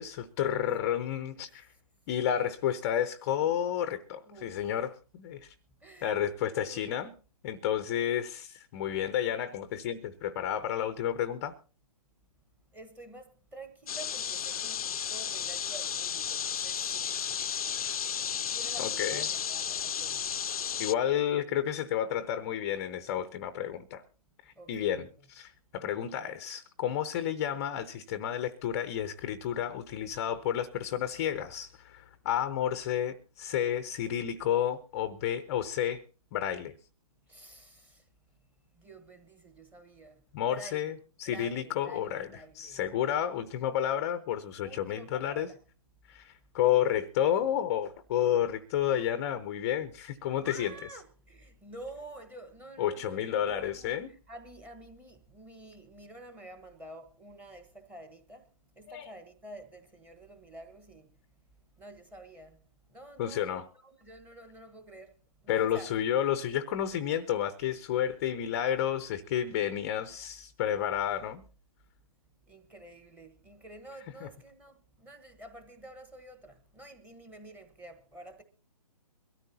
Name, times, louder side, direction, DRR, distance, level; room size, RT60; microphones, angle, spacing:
voice 1, 0.0-1.7 2.1-5.5 6.0-7.1 7.4-11.5 18.8-19.2 20.8-24.0 24.5-25.1 25.4-36.0 36.3-36.7 40.3-40.9 41.2-45.5 46.1-50.7 52.8-54.1 58.9-59.1 63.2-63.7 65.5-71.4 74.2-74.3, left 10 dB, 25° left, 0.7 m, -31 dB
voice 2, 4.2-4.8 5.8-6.3 6.6-6.9 12.7-17.9 18.5-20.3 24.5-25.3 37.2-38.1 38.7-40.9 41.2-42.9 44.6-45.6 46.9-47.0 47.4-47.6 50.4-61.1 61.8-62.6 62.9-65.9 70.1-70.3 72.4-78.4, right 2 dB, 10° right, 1.3 m, -49 dB
sound 1, 13.9-20.9, left 8 dB, 65° left, 0.6 m, -33 dB
22.5 x 13.5 x 2.8 m
hypercardioid pair, 145°, 20 cm